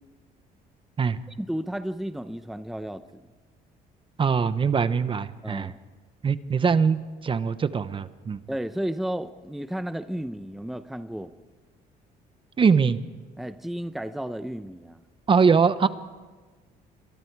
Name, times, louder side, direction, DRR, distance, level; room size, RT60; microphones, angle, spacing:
voice 1, 1.4-3.2 5.4-5.8 8.5-11.3 13.4-15.0, right 1 dB, ahead, 11 dB, 0.8 m, -33 dB
voice 2, 4.2-5.7 6.2-8.4 12.6-13.0 15.3-15.9, right 5 dB, 30° right, 13 dB, 0.9 m, -22 dB
28.0 x 23.0 x 4.7 m, 1.3 s
cardioid pair, 110°, 17 cm